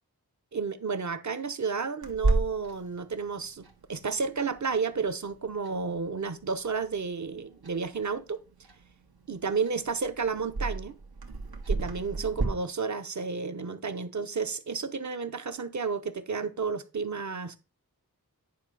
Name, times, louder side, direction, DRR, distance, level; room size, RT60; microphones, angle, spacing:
voice 1, 0.5-8.4 9.3-10.9 11.7-17.6, right 5 dB, 50° right, 0.8 m, -32 dB
Clock, 2.0-12.4, right 3 dB, 85° right, 1.6 m, -35 dB
9.7 x 3.3 x 6.3 m
wide cardioid pair, 95°, 36 cm